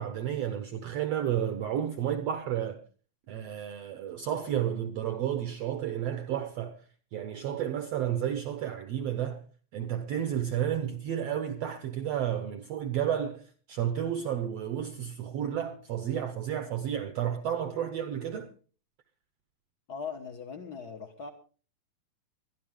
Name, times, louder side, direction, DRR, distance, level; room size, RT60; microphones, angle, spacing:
voice 1, 0.0-2.8 3.3-6.8 7.1-9.4 9.7-18.5, right 10 dB, 75° right, 1.4 m, -32 dB
voice 2, 19.9-21.3, left 5 dB, 90° left, 0.8 m, -39 dB
21.5 x 12.5 x 3.6 m
omnidirectional pair, 4.0 m